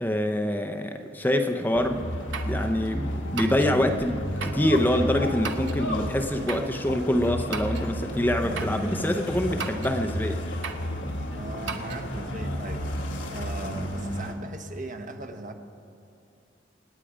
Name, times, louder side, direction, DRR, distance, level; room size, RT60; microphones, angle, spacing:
voice 1, 0.0-2.1 2.4-10.4, left 1 dB, 10° left, 6 dB, 0.6 m, -25 dB
sound 1, 1.6-1.7 2.3-2.6 3.4-3.7 4.4-4.7 5.4-5.8 6.5-6.7 7.5-7.9 8.6-8.8 9.6-10.0 10.6-10.9 11.7-12.0, right 5 dB, 75° right, 0.9 m, -35 dB
sound 2, 1.7-14.3, equal, 70° left, 1.5 m, -32 dB
voice 2, 11.4-12.9 13.3-15.5, right 2 dB, 45° right, 5 dB, 1.1 m, -38 dB
27.0 x 9.1 x 5.0 m, 2.7 s
head